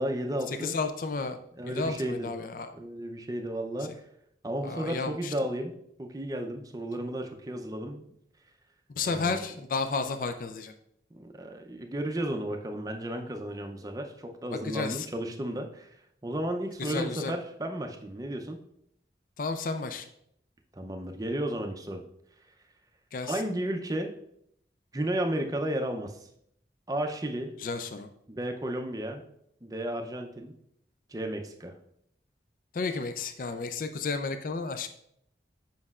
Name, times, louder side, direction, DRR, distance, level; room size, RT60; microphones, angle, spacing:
voice 1, 0.0-0.8 1.6-4.0 4.4-5.7 6.0-8.0 9.0-9.4 11.1-16.0 16.2-18.6 20.7-22.0 23.2-24.1 24.9-26.3 26.9-27.5 28.3-29.2 29.6-30.5 31.1-31.7, right 1 dB, 20° right, 4 dB, 0.5 m, -33 dB
voice 2, 0.6-1.4 1.7-2.7 4.6-5.3 8.9-10.7 14.5-15.1 16.8-17.3 19.4-20.1 23.1-23.4 27.6-28.1 32.7-34.9, left 4 dB, 50° left, 8 dB, 0.4 m, -32 dB
7.6 x 5.3 x 2.4 m, 0.72 s
head